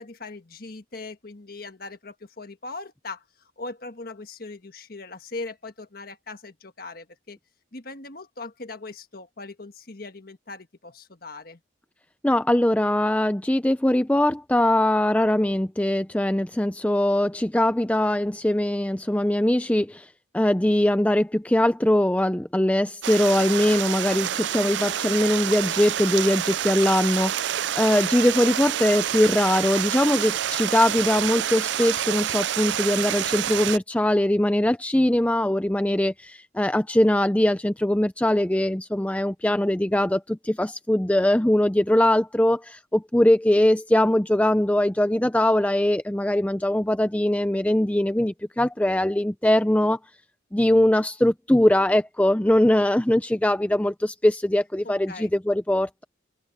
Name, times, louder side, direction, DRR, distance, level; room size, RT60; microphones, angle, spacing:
voice 1, 0.0-3.2 3.6-7.4 7.7-11.6 54.8-55.3, left 3 dB, 50° left, 1.5 m, -39 dB
voice 2, 12.2-20.1 20.3-50.0 50.5-56.0, left 1 dB, 5° left, 0.5 m, -21 dB
Stream, 23.0-33.8, right 11 dB, 65° right, 0.4 m, -28 dB
head